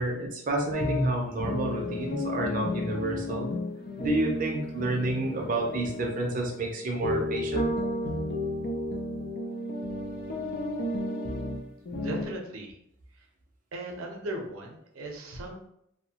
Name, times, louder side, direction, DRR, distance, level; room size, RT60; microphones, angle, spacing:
voice 1, 0.0-3.5 4.0-7.7, right 2 dB, 40° right, 0 dB, 0.5 m, -30 dB
sound 1, 0.7-12.3, left 1 dB, 45° left, 0.4 m, -32 dB
voice 2, 12.0-12.8 13.7-15.7, right 1 dB, 85° right, 1 dB, 0.6 m, -37 dB
2.7 x 2.1 x 2.8 m, 0.74 s
head